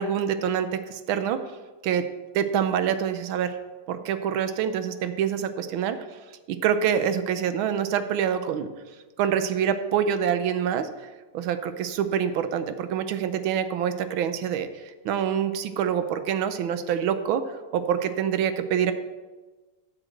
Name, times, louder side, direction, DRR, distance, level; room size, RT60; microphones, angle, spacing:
voice 1, 0.0-1.4 1.8-2.0 2.3-3.6 3.9-6.1 6.5-8.7 9.2-10.9 11.3-14.7 15.0-18.9, right 8 dB, 75° right, 10 dB, 1.4 m, -26 dB
9.8 x 5.0 x 7.7 m, 1.3 s
omnidirectional pair, 2.4 m